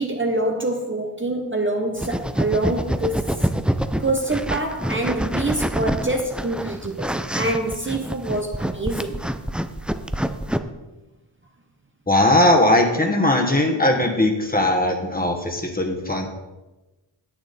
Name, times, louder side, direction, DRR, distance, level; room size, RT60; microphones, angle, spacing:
voice 1, 0.0-3.5 4.0-9.2, right 2 dB, 25° right, 3 dB, 0.8 m, -25 dB
sound 1, 1.9-10.6, equal, ahead, 0.4 m, -26 dB
voice 2, 12.1-16.3, left 1 dB, 20° left, 2 dB, 1.5 m, -19 dB
10.0 x 8.7 x 4.2 m, 1.1 s
wide cardioid pair, 100°, 48 cm